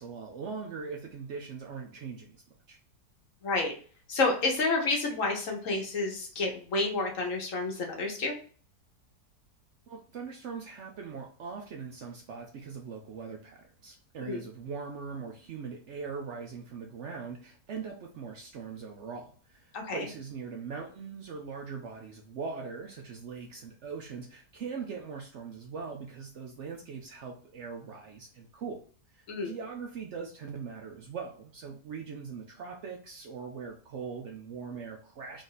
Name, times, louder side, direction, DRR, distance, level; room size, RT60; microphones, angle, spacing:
voice 1, 0.0-2.8 9.9-28.8 29.1-35.4, right 5 dB, 75° right, 2 dB, 0.6 m, -41 dB
voice 2, 3.4-3.8 4.1-8.3 14.2-14.4 19.7-20.1 29.3-29.5, left 3 dB, 55° left, 1 dB, 1.2 m, -29 dB
3.8 x 2.6 x 3.9 m, 0.41 s
omnidirectional pair, 1.8 m